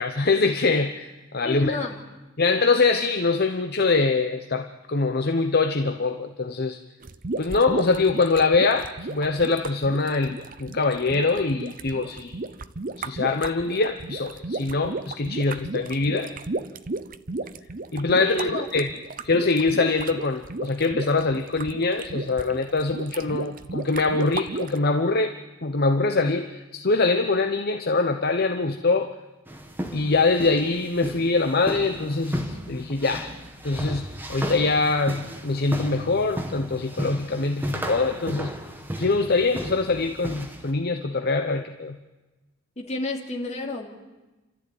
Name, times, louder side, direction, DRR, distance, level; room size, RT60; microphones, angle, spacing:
voice 1, 0.0-1.8 2.4-6.8 7.4-12.4 13.0-16.3 17.9-18.9 19.2-29.1 29.9-33.3 33.6-38.5 39.0-42.0, left 3 dB, 50° left, 6 dB, 1.0 m, -23 dB
voice 2, 1.4-2.0 18.2-18.7 42.8-43.9, left 2 dB, 35° left, 0 dB, 3.0 m, -30 dB
sound 1, 7.0-24.8, right 3 dB, 45° right, 0.8 m, -34 dB
sound 2, 29.5-40.7, equal, 10° right, 1.9 m, -35 dB
29.0 x 13.5 x 9.5 m, 1.1 s
head